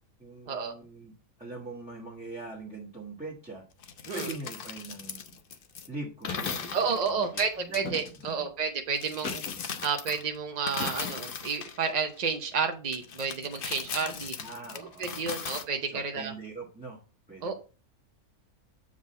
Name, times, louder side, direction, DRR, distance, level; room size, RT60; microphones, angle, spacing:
voice 1, 0.2-3.6 4.1-5.3 5.9-8.5 13.8-15.4 15.9-17.0 17.3-17.5, right 3 dB, 5° right, -6 dB, 1.2 m, -43 dB
sound 1, 3.8-5.9 6.2-8.2 9.0-10.4 10.7-12.3 12.9-15.6, left 6 dB, 55° left, 0.6 m, -38 dB
sound 2, 6.3-6.7 7.8-8.4 9.2-9.9 10.8-11.4, left 4 dB, 90° left, 1.9 m, -38 dB
voice 2, 6.7-9.4 9.8-14.3 15.0-16.3 17.4-17.5, right 5 dB, 50° right, 5 dB, 0.5 m, -31 dB
7.5 x 3.8 x 4.2 m, 0.35 s
omnidirectional pair, 1.6 m